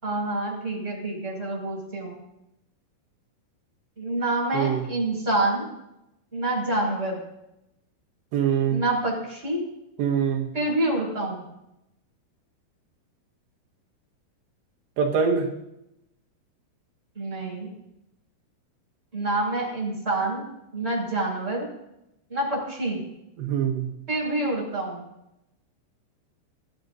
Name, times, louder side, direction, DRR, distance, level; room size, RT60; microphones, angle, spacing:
voice 1, 0.0-2.2 4.0-5.7 6.3-7.2 8.7-9.7 10.5-11.4 17.1-17.7 19.1-20.4 20.7-21.7 22.3-23.0 24.1-25.1, right 2 dB, 15° right, -3 dB, 5.9 m, -27 dB
voice 2, 4.5-4.9 8.3-8.8 10.0-10.5 15.0-15.6 23.4-23.9, right 7 dB, 90° right, 0 dB, 3.7 m, -24 dB
22.5 x 14.5 x 2.7 m, 0.87 s
omnidirectional pair, 4.8 m